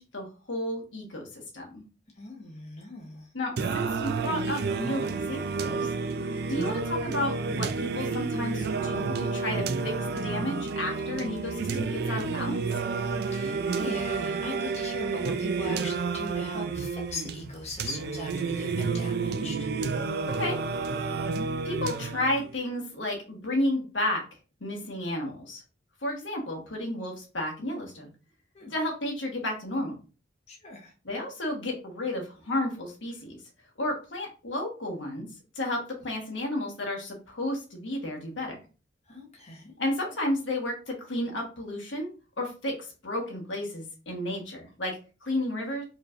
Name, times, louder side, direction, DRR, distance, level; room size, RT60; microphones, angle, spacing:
voice 1, 0.0-1.8 3.3-5.9 6.5-12.6 20.3-20.6 21.6-24.2 24.6-25.6 26.0-28.1 28.7-29.9 31.0-33.4 33.8-35.3 35.5-38.5 39.8-42.1 42.4-45.8, left 1 dB, 85° left, 1 dB, 1.4 m, -32 dB
voice 2, 2.2-3.3 13.3-19.7 28.5-28.7 30.5-30.9 39.1-39.7, left 2 dB, 35° left, 0 dB, 1.0 m, -40 dB
Singing, 3.6-22.6, right 4 dB, 60° right, 0.4 m, -30 dB
4.6 x 3.2 x 2.5 m, 0.34 s
head